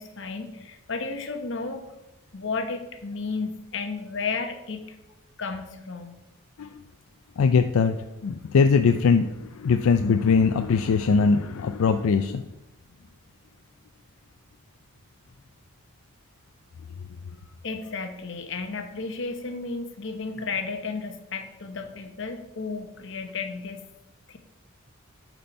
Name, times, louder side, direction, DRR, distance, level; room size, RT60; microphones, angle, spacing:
voice 1, 0.0-1.8 2.3-4.9 5.4-6.1 17.6-23.8 24.3-24.4, left 4 dB, 60° left, 6 dB, 1.0 m, -33 dB
voice 2, 7.4-12.5, left 5 dB, 85° left, 8 dB, 0.4 m, -21 dB
8.7 x 4.3 x 5.3 m, 0.93 s
head